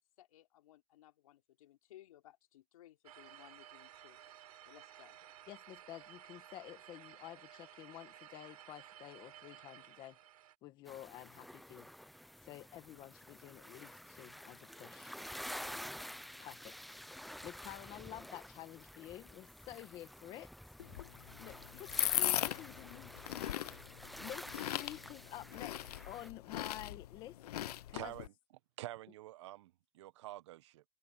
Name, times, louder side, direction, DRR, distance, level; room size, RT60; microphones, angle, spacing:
voice 1, 0.2-4.2 4.6-5.2, left 13 dB, 60° left, 4.3 m, -60 dB
sound 1, 3.0-10.5, right 11 dB, 75° right, 3.6 m, -56 dB
voice 2, 5.5-10.2 10.6-11.9 12.4-15.1 16.4-17.1 17.4-20.5 21.4-23.1 24.2-27.4 27.9-28.1, left 14 dB, 20° left, 1.3 m, -50 dB
sound 2, 10.9-26.3, equal, ahead, 0.3 m, -50 dB
sound 3, 20.8-28.3, left 13 dB, 80° left, 0.6 m, -39 dB
voice 3, 27.9-28.3 28.8-30.8, right 15 dB, 50° right, 1.1 m, -47 dB
supercardioid pair, 170°, 20 cm